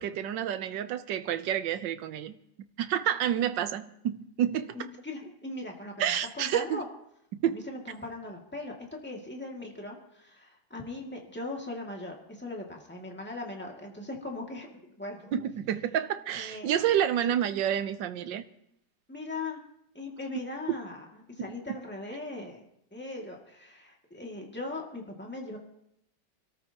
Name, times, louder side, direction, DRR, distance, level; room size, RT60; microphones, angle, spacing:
voice 1, 0.0-2.3 2.8-4.7 6.0-6.8 7.3-7.6 15.3-18.4 20.7-20.8 21.4-21.5, right 10 dB, 80° right, 11 dB, 1.5 m, -29 dB
voice 2, 4.7-6.9 7.5-15.4 16.3-16.7 17.2-17.3 19.1-19.6 19.9-22.6 22.9-25.6, left 2 dB, 5° left, -1 dB, 2.2 m, -39 dB
27.0 x 13.5 x 2.9 m, 0.77 s
omnidirectional pair, 1.9 m